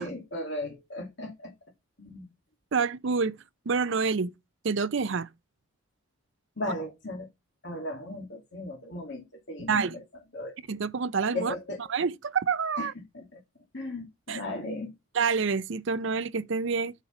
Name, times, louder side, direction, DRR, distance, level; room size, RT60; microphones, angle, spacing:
voice 1, 0.0-1.5 2.0-2.3 6.6-7.3 7.6-10.0 10.3-10.6 11.3-11.9 12.8-12.9 13.1-13.4 13.7-14.9, left 1 dB, 55° left, 2.4 m, -36 dB
voice 2, 2.7-3.4 3.7-4.3 4.6-5.3 9.7-10.0 10.7-11.5 11.9-12.9 14.3-14.4 15.2-16.9, right 5 dB, 60° right, 0.5 m, -27 dB
8.2 x 5.1 x 5.9 m
head